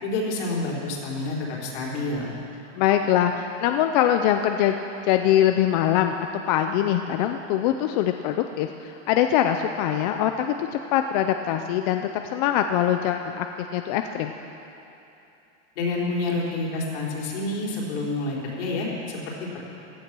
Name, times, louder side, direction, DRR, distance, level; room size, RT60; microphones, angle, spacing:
voice 1, 0.0-2.3 15.8-19.6, left 2 dB, 60° left, -3 dB, 4.3 m, -28 dB
voice 2, 2.8-4.8 5.0-6.2 6.5-14.3, left 11 dB, 35° left, 6 dB, 0.5 m, -23 dB
16.0 x 12.0 x 6.1 m, 2.8 s
supercardioid pair, 160°, 37 cm